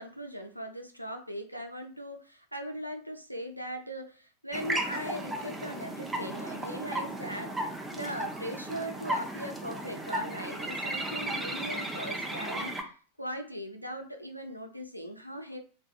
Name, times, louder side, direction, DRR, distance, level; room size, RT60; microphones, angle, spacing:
voice 1, 0.0-7.6 7.9-12.9 13.2-15.6, equal, 90° right, 3 dB, 0.3 m, -39 dB
sound 1, 4.5-12.8, right 1 dB, 10° right, 0.4 m, -35 dB
2.5 x 2.2 x 2.3 m, 0.40 s
figure-of-eight pair, 90°, 0 cm